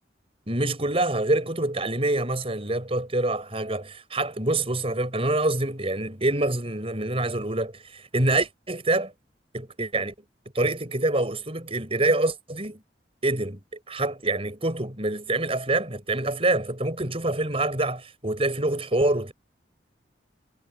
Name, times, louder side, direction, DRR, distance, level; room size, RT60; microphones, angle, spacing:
voice 1, 0.5-9.1 9.5-10.1 10.5-12.8 13.2-19.3, right 2 dB, 30° right, 5.8 m, -26 dB
head